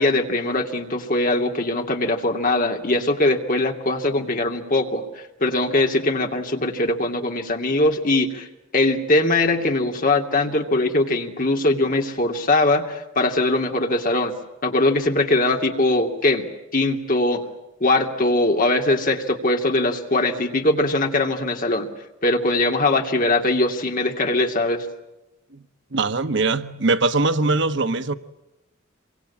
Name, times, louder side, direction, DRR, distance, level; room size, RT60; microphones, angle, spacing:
voice 1, 0.0-5.0 5.4-8.5 8.7-14.3 14.6-16.5 16.7-17.4 17.8-21.9 22.2-24.8, left 2 dB, 45° left, 2.7 m, -21 dB
voice 2, 25.9-28.1, right 3 dB, 60° right, 1.1 m, -21 dB
28.0 x 24.0 x 8.6 m
head